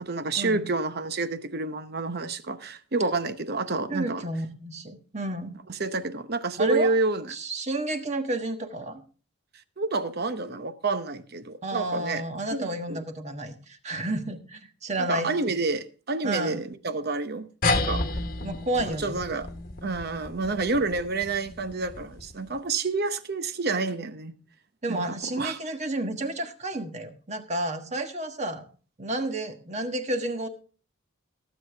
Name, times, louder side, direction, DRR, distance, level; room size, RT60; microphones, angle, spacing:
voice 1, 0.0-4.2 5.7-7.3 9.8-12.2 12.5-13.0 15.0-18.0 18.8-19.5 19.8-24.3 24.9-25.6, right 3 dB, 50° right, 0.8 m, -29 dB
voice 2, 3.9-5.6 6.6-6.9 7.3-9.0 11.6-15.3 16.2-16.6 18.4-19.2 24.8-28.6 29.0-30.5, right 1 dB, 35° right, 1.3 m, -31 dB
sound 1, 17.6-22.5, left 2 dB, 45° left, 1.2 m, -31 dB
18.0 x 8.2 x 3.4 m
head